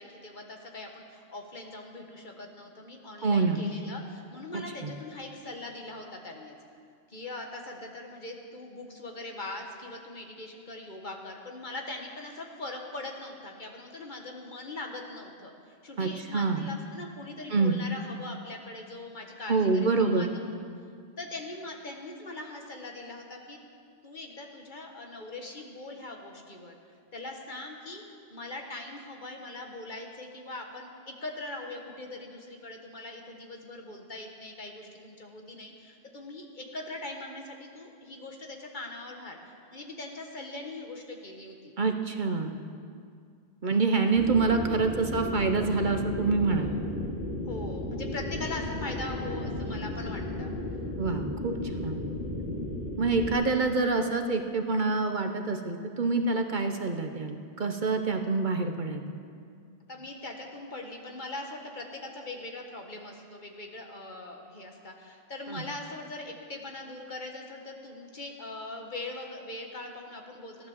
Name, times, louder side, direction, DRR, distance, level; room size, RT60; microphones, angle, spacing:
voice 1, 0.0-6.5 7.1-20.5 21.2-23.6 24.0-26.7 27.1-28.0 28.3-39.4 39.7-41.8 46.4-46.8 47.5-50.5 59.9-70.7, left 2 dB, 45° left, 2 dB, 1.6 m, -41 dB
voice 2, 3.2-3.7 4.5-4.9 16.0-16.7 17.5-17.8 19.5-20.3 41.8-42.5 43.6-46.7 51.0-51.6 51.8-52.0 53.0-59.0 65.5-65.6, right 4 dB, 50° right, 6 dB, 0.9 m, -26 dB
sound 1, 44.1-53.3, left 1 dB, 70° left, 2.6 m, -34 dB
15.5 x 11.0 x 7.2 m, 2.2 s
omnidirectional pair, 1.1 m